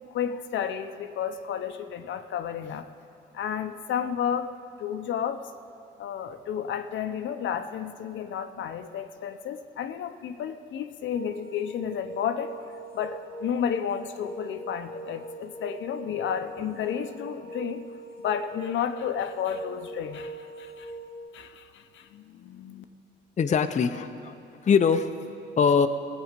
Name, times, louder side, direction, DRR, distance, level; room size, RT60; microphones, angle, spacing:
voice 1, 0.1-2.9 3.3-4.5 4.8-5.4 6.0-12.5 12.9-17.8 18.2-20.3 20.6-20.9 21.3-22.8, left 8 dB, 70° left, 8 dB, 0.7 m, -32 dB
sound 1, 11.1-21.2, right 2 dB, 55° right, 2.6 m, -41 dB
voice 2, 23.4-24.4 24.6-25.9, left 6 dB, 35° left, 8 dB, 0.6 m, -23 dB
17.5 x 8.5 x 5.2 m, 2.9 s
cardioid pair, 90°, 20 cm